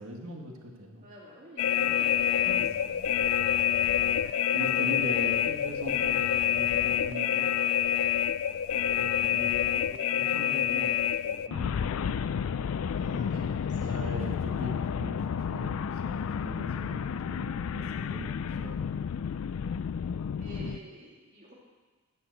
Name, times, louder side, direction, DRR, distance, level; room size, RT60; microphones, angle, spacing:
voice 1, 0.0-1.0 1.8-1.9 2.4-3.1 4.5-7.5 9.0-9.6 10.1-12.4 13.8-19.1 20.5-20.7, equal, 70° right, 1 dB, 1.8 m, -41 dB
voice 2, 1.0-2.5 3.8-4.4 8.7-9.1 9.7-10.0 12.9-13.9 14.9-15.1 17.9-18.4 20.4-21.5, equal, 35° right, -4 dB, 2.8 m, -49 dB
sound 1, 1.6-20.8, left 9 dB, 65° left, 0.3 m, -28 dB
10.0 x 7.7 x 8.0 m, 1.3 s
head